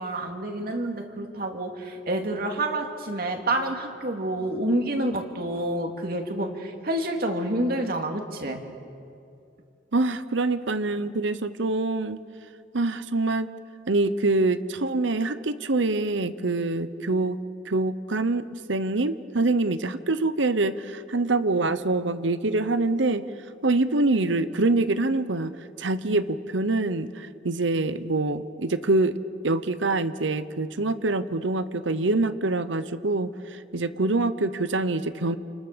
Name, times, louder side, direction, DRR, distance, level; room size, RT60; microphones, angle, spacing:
voice 1, 0.0-8.6, right 1 dB, 50° right, 3 dB, 2.6 m, -28 dB
voice 2, 9.9-12.2 12.7-13.5 13.9-17.4 17.7-23.2 23.6-25.5 25.8-29.1 29.4-33.3 33.7-35.4, right 2 dB, 75° right, 12 dB, 1.0 m, -25 dB
29.0 x 29.0 x 6.9 m, 2.5 s
head